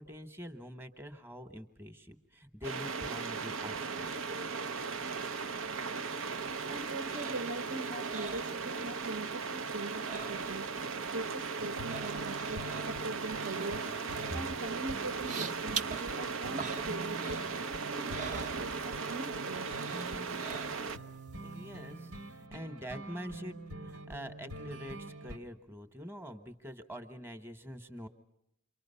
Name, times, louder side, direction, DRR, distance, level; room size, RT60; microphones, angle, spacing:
voice 1, 0.0-4.1 14.3-14.4 21.4-28.1, equal, 10° right, 1.2 m, -45 dB
sound 1, 2.6-21.0, right 4 dB, 70° right, 0.8 m, -37 dB
sound 2, 6.1-9.2 9.4-10.8 11.1-19.2 19.6-21.1 21.5-21.6, right 5 dB, 35° right, 0.9 m, -45 dB
voice 2, 6.7-10.7 11.1-13.9 14.3-19.7, right 2 dB, 55° right, 1.1 m, -41 dB
sound 3, 11.6-25.4, right 1 dB, 90° right, 1.7 m, -46 dB
28.5 x 24.0 x 5.6 m
head